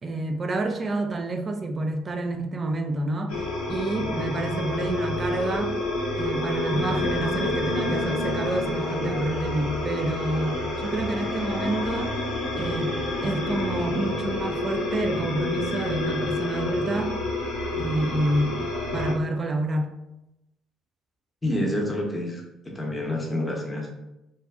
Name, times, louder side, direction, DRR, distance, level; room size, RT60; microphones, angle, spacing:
voice 1, 0.0-3.4 3.7-5.8 6.2-12.2 12.5-17.1 17.8-18.7 18.9-19.9, right 2 dB, 35° right, 5 dB, 0.4 m, -28 dB
sound 1, 3.3-19.1, left 2 dB, 75° left, 0.6 m, -29 dB
voice 2, 21.4-22.4 22.7-23.9, left 1 dB, 20° left, -1 dB, 0.8 m, -27 dB
2.6 x 2.3 x 2.3 m, 0.91 s
figure-of-eight pair, 50°, 0 cm